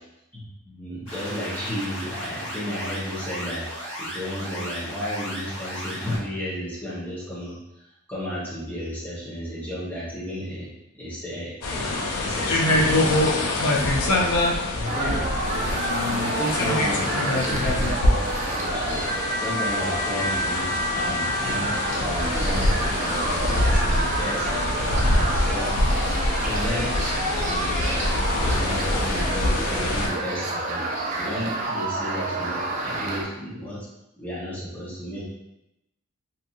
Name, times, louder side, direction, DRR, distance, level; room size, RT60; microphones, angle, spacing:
voice 1, 0.3-3.6 4.0-10.7 10.9-13.4 13.7-14.3 14.7-15.2 16.2-17.9 18.5-19.0 19.4-21.7 22.0-24.5 24.9-25.7 26.4-26.9 27.3-28.1 28.4-33.9 34.2-35.2, equal, 10° left, -9 dB, 0.8 m, -33 dB
sound 1, 1.1-6.2, equal, 60° left, 1.5 m, -35 dB
sound 2, 11.6-30.1, left 1 dB, 85° left, 0.4 m, -25 dB
sound 3, 14.8-33.2, right 2 dB, 35° right, 0.3 m, -29 dB
2.7 x 2.6 x 2.4 m, 0.89 s
head